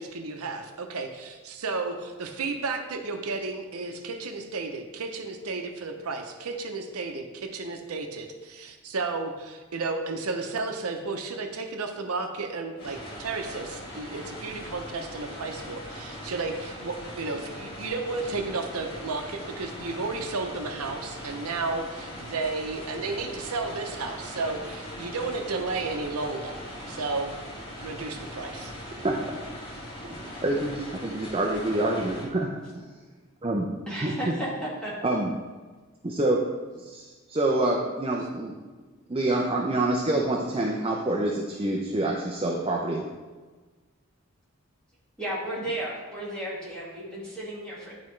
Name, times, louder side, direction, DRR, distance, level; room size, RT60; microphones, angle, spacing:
voice 1, 0.0-26.6 26.9-27.3 27.8-28.7, right 3 dB, 85° right, 5 dB, 0.7 m, -33 dB
sound 1, 12.8-32.2, equal, 40° left, 2.3 m, -40 dB
voice 2, 29.0-29.4 30.1-32.8 33.4-34.3 35.0-35.3 36.0-36.4 36.8-38.5 39.1-43.0, right 2 dB, 25° right, 0 dB, 0.5 m, -27 dB
voice 3, 33.9-34.9 45.2-47.9, right 1 dB, 5° left, -8 dB, 2.0 m, -34 dB
10.5 x 4.3 x 3.2 m, 1.4 s
head